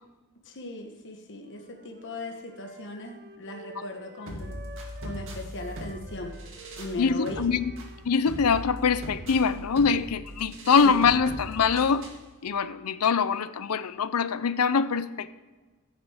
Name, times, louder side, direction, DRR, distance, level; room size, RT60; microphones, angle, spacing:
voice 1, 0.4-4.6 5.0-6.3 6.8-7.4 10.8-10.9, left 2 dB, 55° left, 2 dB, 1.3 m, -38 dB
sound 1, 1.4-5.3 5.5-9.9, right 3 dB, 45° right, 1.1 m, -50 dB
sound 2, 4.3-12.3, equal, 60° right, 2.3 m, -40 dB
voice 2, 7.0-7.7 8.0-12.1 12.4-15.3, left 5 dB, 85° left, 14 dB, 0.6 m, -24 dB
15.0 x 6.6 x 4.9 m, 1.3 s
head